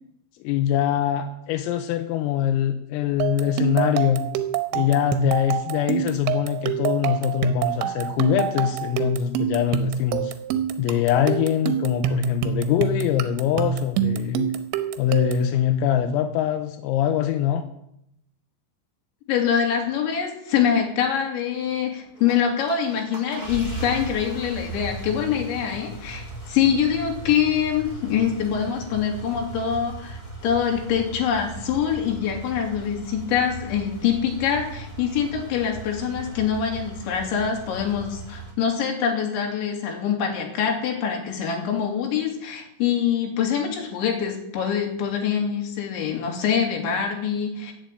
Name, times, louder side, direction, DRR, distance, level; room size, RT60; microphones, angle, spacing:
voice 1, 0.4-4.2 4.7-10.3 10.8-14.5 15.0-17.6, left 10 dB, 90° left, 7 dB, 3.6 m, -23 dB
sound 1, 3.2-15.5, right 9 dB, 80° right, 3.0 m, -26 dB
voice 2, 19.3-47.7, left 8 dB, 65° left, 1 dB, 4.8 m, -24 dB
sound 2, 22.1-38.5, right 3 dB, 10° left, 2.1 m, -38 dB
14.5 x 7.7 x 9.1 m, 0.77 s
omnidirectional pair, 6.0 m